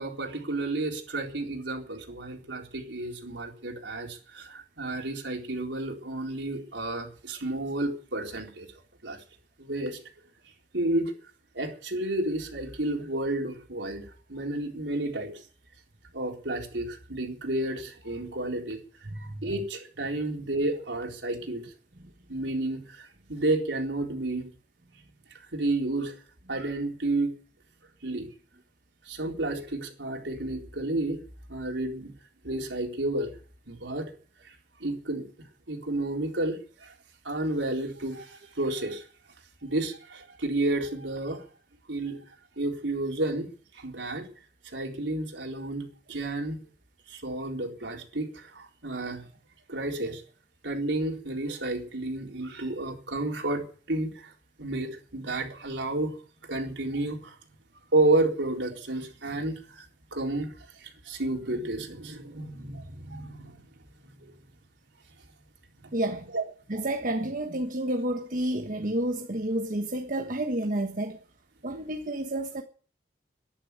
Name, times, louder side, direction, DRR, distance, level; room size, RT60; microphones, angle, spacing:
voice 1, 0.0-8.7 9.0-9.2 9.6-10.0 10.7-11.1 11.5-15.3 16.1-18.8 19.2-21.7 22.3-24.5 25.5-26.2 26.5-27.3 28.0-28.3 29.1-31.2 31.5-32.1 32.4-33.3 33.7-34.1 34.4-34.5 34.8-35.2 35.7-36.9 37.2-39.0 39.6-41.4 41.9-42.2 42.6-43.5 43.7-44.3 44.7-46.6 47.1-49.2 49.7-50.2 50.6-54.3 54.6-56.2 56.5-57.4 57.9-59.8 60.1-63.7 64.0-64.3 65.8-65.9 66.3-66.4, right 2 dB, 85° right, 4.1 m, -31 dB
voice 2, 65.9-66.3 66.7-71.2 71.6-72.6, right 1 dB, 50° right, 1.4 m, -30 dB
11.5 x 11.0 x 9.9 m
head